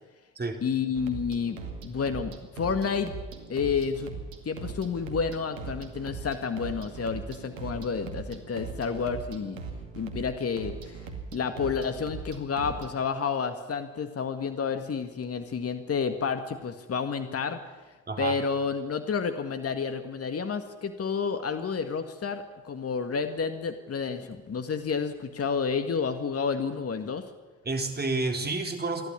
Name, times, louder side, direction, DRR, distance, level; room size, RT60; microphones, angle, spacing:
voice 1, 0.6-3.1 3.5-4.1 4.5-9.6 10.0-11.0 11.3-17.6 18.2-27.3, left 5 dB, 40° left, 8 dB, 1.9 m, -30 dB
sound 1, 0.9-13.0, right 5 dB, 85° right, 2.3 m, -40 dB
voice 2, 18.1-18.4 27.6-29.1, right 3 dB, 25° right, 4 dB, 4.0 m, -29 dB
28.5 x 12.0 x 9.9 m, 1.2 s
hypercardioid pair, 55°, 38 cm